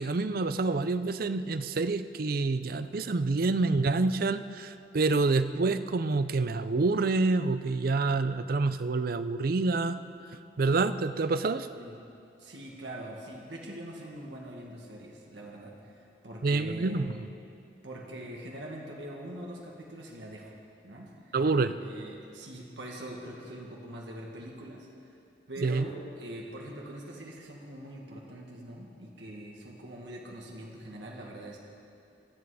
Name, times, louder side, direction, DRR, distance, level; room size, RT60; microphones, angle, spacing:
voice 1, 0.0-10.0 10.6-11.7 16.4-17.3 21.3-21.7 25.6-25.9, right 3 dB, 55° right, 13 dB, 0.5 m, -27 dB
voice 2, 12.4-17.1 17.8-20.5 20.8-21.4 21.7-25.2 25.5-31.6, right 1 dB, 85° right, -2 dB, 1.9 m, -43 dB
24.0 x 8.3 x 5.0 m, 2.6 s
head